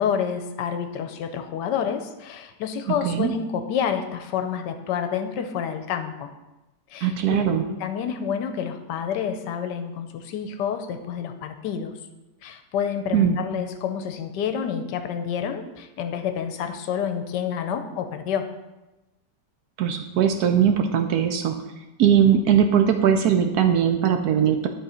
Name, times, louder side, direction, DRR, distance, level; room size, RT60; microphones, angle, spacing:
voice 1, 0.0-6.3 6.9-11.9 12.4-18.5, left 7 dB, 75° left, 8 dB, 1.2 m, -29 dB
voice 2, 7.0-7.6 13.1-13.4 19.8-21.5 22.0-24.7, right 8 dB, 70° right, 6 dB, 0.9 m, -20 dB
10.5 x 3.8 x 4.3 m, 1.0 s
omnidirectional pair, 1.9 m